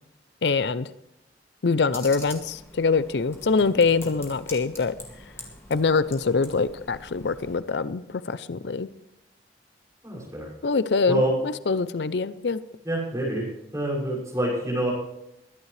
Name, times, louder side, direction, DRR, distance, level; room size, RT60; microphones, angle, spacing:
voice 1, 0.4-0.9 1.6-4.9 5.7-8.9 10.6-12.6, left 4 dB, 80° left, 15 dB, 0.5 m, -24 dB
Computer keyboard, 1.9-7.6, left 2 dB, 15° left, 2.2 m, -44 dB
voice 2, 10.0-10.5 11.1-11.3 12.8-13.5 13.7-14.9, right 1 dB, 20° right, -5 dB, 6.2 m, -26 dB
22.5 x 11.0 x 3.3 m, 0.83 s
head